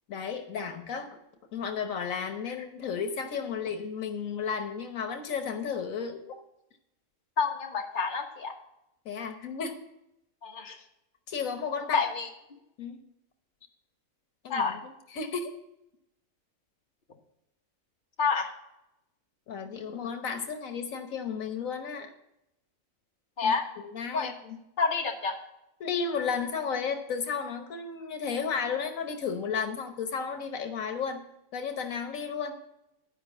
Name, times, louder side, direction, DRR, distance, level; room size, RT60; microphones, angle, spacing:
voice 1, 0.1-1.2 1.5-6.4 9.0-9.8 11.3-12.0 12.8-13.0 14.4-15.5 19.5-22.1 23.4-23.5 23.8-24.6 25.8-31.2 31.5-32.6, left 6 dB, 85° left, 6 dB, 1.5 m, -33 dB
voice 2, 7.4-8.5 10.4-10.8 11.9-12.6 14.5-14.8 18.2-18.5 23.4-23.6 24.1-24.3 24.8-25.4, left 5 dB, 40° left, 1 dB, 1.5 m, -28 dB
11.5 x 5.2 x 7.1 m, 0.85 s
omnidirectional pair, 1.4 m